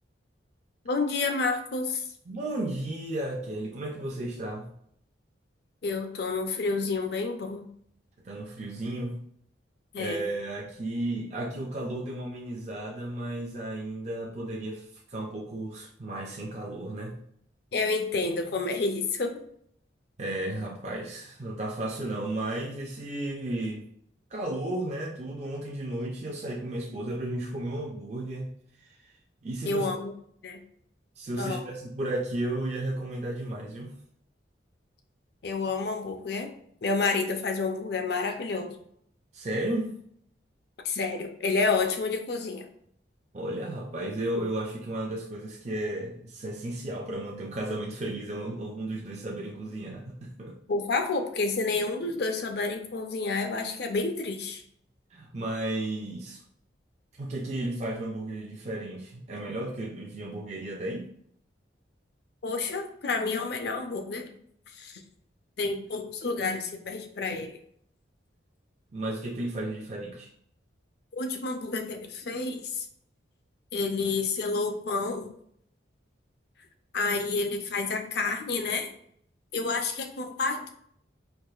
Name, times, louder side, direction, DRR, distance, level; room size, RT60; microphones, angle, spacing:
voice 1, 0.9-2.0 5.8-7.6 9.9-10.2 17.7-19.4 29.7-30.1 30.4-30.6 31.4-31.7 35.4-36.5 36.8-38.8 40.8-42.7 50.7-54.6 62.4-64.3 64.7-65.0 65.6-67.5 71.1-72.9 73.7-75.3 76.9-78.9 79.5-80.7, left 3 dB, 55° left, 5 dB, 0.5 m, -29 dB
voice 2, 2.3-4.7 8.2-9.2 10.0-17.2 20.2-23.8 24.3-28.5 28.8-29.1 29.4-29.9 31.2-33.9 39.3-39.9 43.3-50.5 55.1-56.4 57.2-61.1 68.9-70.3, right 1 dB, 35° right, -1 dB, 0.4 m, -34 dB
4.6 x 2.5 x 2.3 m, 0.67 s
head